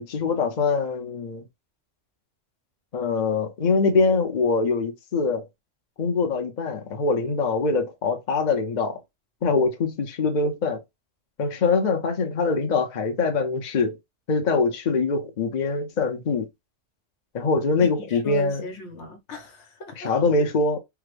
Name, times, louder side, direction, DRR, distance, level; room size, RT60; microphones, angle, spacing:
voice 1, 0.0-1.4 2.9-5.5 6.0-9.0 9.4-10.8 11.4-14.0 14.3-16.5 17.3-18.6 20.0-20.8, left 4 dB, 45° left, 0.7 m, -23 dB
voice 2, 18.0-20.1, left 1 dB, 70° left, 1.2 m, -38 dB
3.5 x 2.0 x 3.2 m
omnidirectional pair, 1.2 m